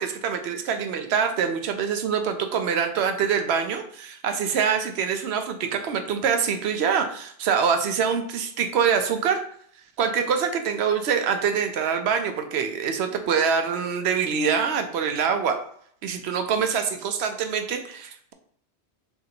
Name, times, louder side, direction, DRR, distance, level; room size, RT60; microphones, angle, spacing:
voice 1, 0.0-9.4 10.0-15.6 16.0-18.3, right 6 dB, 75° right, 6 dB, 0.8 m, -25 dB
3.8 x 2.6 x 4.2 m, 0.62 s
omnidirectional pair, 1.1 m